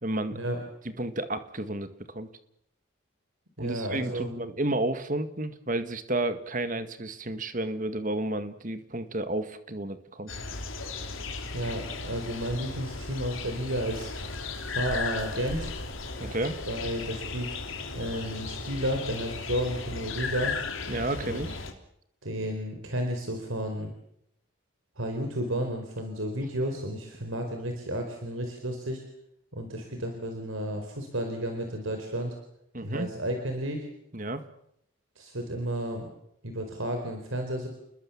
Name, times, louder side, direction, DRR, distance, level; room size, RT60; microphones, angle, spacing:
voice 1, 0.0-0.4 1.0-2.3 3.6-10.3 16.2-16.6 20.9-21.6 32.7-33.1 34.1-34.4, right 1 dB, 40° right, 10 dB, 1.7 m, -31 dB
voice 2, 3.6-4.4 11.5-14.1 14.7-15.7 16.7-17.6 17.9-20.5 21.2-21.5 22.2-23.9 25.0-29.0 29.5-32.3 32.8-33.9 35.2-36.0 36.4-37.7, right 1 dB, 70° right, 4 dB, 4.3 m, -32 dB
sound 1, 10.3-21.7, left 4 dB, 70° left, 3.3 m, -36 dB
29.5 x 21.0 x 7.3 m, 0.77 s
head